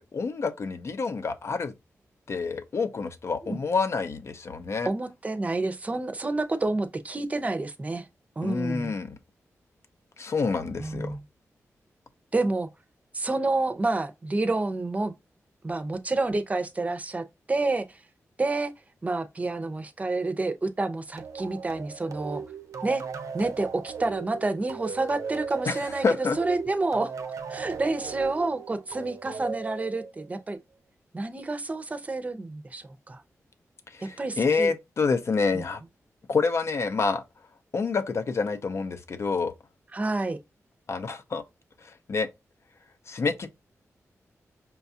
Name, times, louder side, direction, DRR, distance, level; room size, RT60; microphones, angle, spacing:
voice 1, 0.0-1.7 2.3-4.9 8.4-9.1 10.2-11.1 25.7-26.4 33.9-35.8 36.3-37.2 37.7-39.5 40.9-41.4 42.1-42.3 43.1-43.5, left 4 dB, 55° left, 0.6 m, -27 dB
voice 2, 4.8-8.1 8.4-8.9 10.8-11.2 12.3-12.7 13.1-15.1 15.6-17.8 18.4-18.7 19.0-22.4 22.8-23.0 23.3-27.1 27.5-30.6 31.1-33.2 34.2-34.7 35.5-35.6 39.9-40.4, right 2 dB, 25° right, 0.6 m, -29 dB
sound 1, 21.2-30.4, right 6 dB, 75° right, 0.6 m, -38 dB
5.6 x 2.3 x 2.7 m
wide cardioid pair, 105°, 6 cm